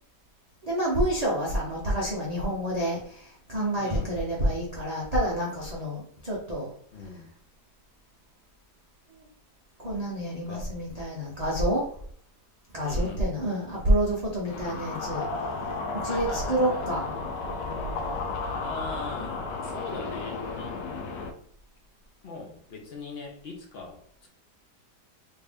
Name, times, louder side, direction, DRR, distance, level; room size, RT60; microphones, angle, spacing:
voice 1, 0.6-6.7 9.1-9.3 9.8-11.9 12.7-15.5 15.9-17.1, right 1 dB, 45° right, -5 dB, 0.5 m, -28 dB
voice 2, 3.8-4.2 6.9-7.3 10.4-10.7 12.8-13.3 16.0-16.8 18.6-20.9 22.2-24.3, left 3 dB, 60° left, 1 dB, 0.6 m, -41 dB
sound 1, 14.4-21.3, left 3 dB, 85° left, 1.3 m, -33 dB
3.3 x 2.6 x 3.5 m, 0.62 s
omnidirectional pair, 1.9 m